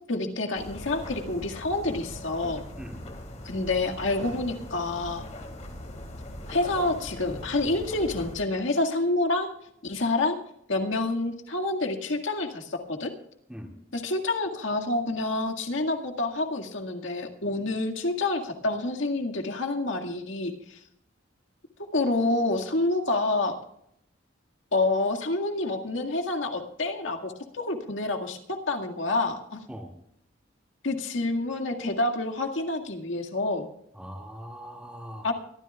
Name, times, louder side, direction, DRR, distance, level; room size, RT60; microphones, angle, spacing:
voice 1, 0.1-2.6 3.4-5.3 6.5-9.5 9.8-10.4 10.7-13.1 13.9-20.8 21.9-23.5 24.7-29.6 30.8-33.7 35.2-35.3, left 2 dB, 75° left, 3 dB, 1.9 m, -28 dB
sound 1, 0.5-8.4, left 1 dB, 40° left, 2.8 m, -40 dB
voice 2, 33.9-35.3, equal, 5° right, 1 dB, 2.2 m, -41 dB
23.0 x 14.0 x 2.3 m, 0.74 s
head